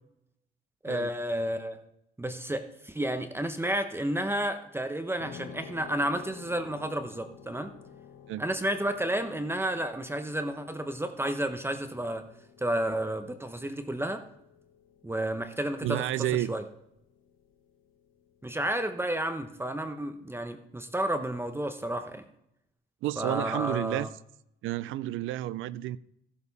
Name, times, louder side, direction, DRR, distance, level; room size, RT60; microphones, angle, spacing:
voice 1, 0.8-1.8 2.2-7.7 8.4-12.2 12.6-14.2 15.0-16.1 16.5-16.6 18.4-22.2 23.2-24.1, right 1 dB, 10° right, 1.0 m, -31 dB
sound 1, 5.2-19.9, left 8 dB, 85° left, 1.3 m, -52 dB
voice 2, 15.8-16.5 23.0-24.1 24.6-26.0, right 14 dB, 85° right, 0.5 m, -31 dB
15.0 x 6.9 x 4.1 m
cardioid pair, 90°, 20 cm